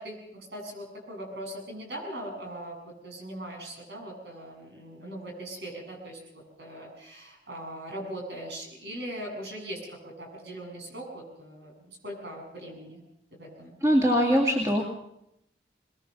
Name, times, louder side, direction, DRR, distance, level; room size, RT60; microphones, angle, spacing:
voice 1, 0.0-13.0 13.3-13.7, right 1 dB, 75° right, 1 dB, 7.8 m, -40 dB
voice 2, 13.8-14.8, equal, 20° right, -1 dB, 2.3 m, -22 dB
22.5 x 20.5 x 6.9 m, 0.82 s
head